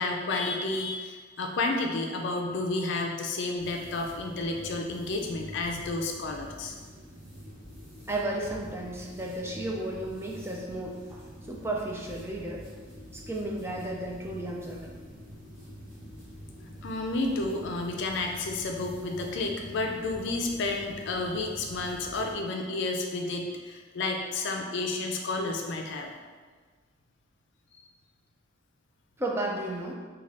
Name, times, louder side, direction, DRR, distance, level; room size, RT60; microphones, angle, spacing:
voice 1, 0.0-6.7 16.8-26.1, left 2 dB, 60° left, 2 dB, 0.4 m, -31 dB
sound 1, 3.6-22.3, equal, 30° right, 1.4 m, -46 dB
voice 2, 8.1-11.2 11.5-12.6 13.1-15.0 29.2-29.9, right 1 dB, 15° right, -1 dB, 0.4 m, -33 dB
3.8 x 2.3 x 3.3 m, 1.5 s
head